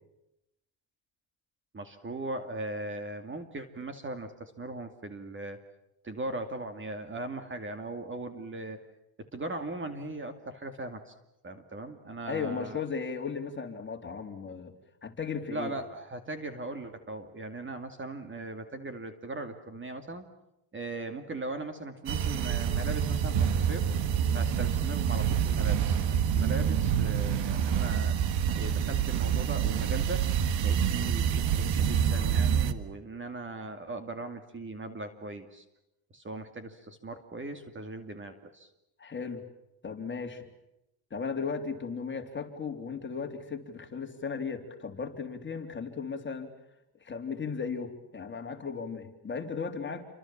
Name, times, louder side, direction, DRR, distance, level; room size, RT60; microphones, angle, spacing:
voice 1, 1.7-5.6 6.0-8.8 9.3-11.1 11.4-12.8 15.5-20.3 20.7-23.9 24.3-28.2 28.6-30.3 30.6-35.6 36.1-38.7, right 2 dB, 25° right, 8 dB, 2.5 m, -39 dB
voice 2, 12.2-14.7 15.0-15.7 39.0-39.4 39.8-40.5 41.1-46.5 47.0-50.1, left 5 dB, 25° left, 3 dB, 3.7 m, -36 dB
sound 1, 22.1-32.7, right 8 dB, 70° right, 1.9 m, -27 dB
29.0 x 25.5 x 7.4 m, 0.87 s
cardioid pair, 140°, 47 cm